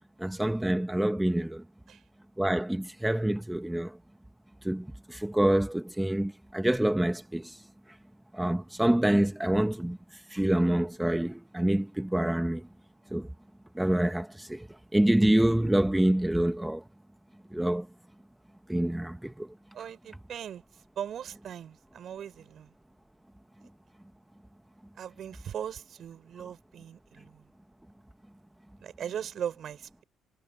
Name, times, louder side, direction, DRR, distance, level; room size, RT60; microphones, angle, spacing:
voice 1, 0.2-1.6 2.4-4.0 4.6-7.6 8.3-10.0 10.3-12.6 13.1-13.3 13.7-14.7 14.9-16.8 17.5-17.9 18.7-19.5, right 1 dB, 5° right, 1.1 m, -26 dB
voice 2, 19.7-20.6 21.0-22.7 25.0-27.5 28.8-30.0, right 9 dB, 65° right, 6.0 m, -39 dB
cardioid pair, 90°, 0 cm